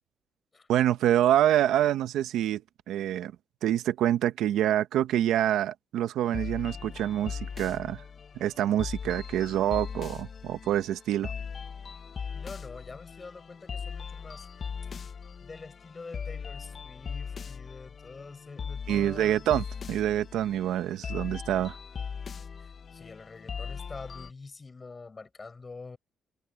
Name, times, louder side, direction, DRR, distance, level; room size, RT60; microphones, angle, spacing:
voice 1, 0.7-2.6 2.9-3.3 3.6-8.0 8.4-11.3 18.9-21.8, right 12 dB, 85° right, 0.9 m, -26 dB
sound 1, 6.3-24.3, left 6 dB, 45° left, 0.7 m, -39 dB
voice 2, 12.3-14.5 15.4-19.4 22.6-26.0, left 4 dB, 30° left, 7.7 m, -46 dB
cardioid pair, 90°, 0 cm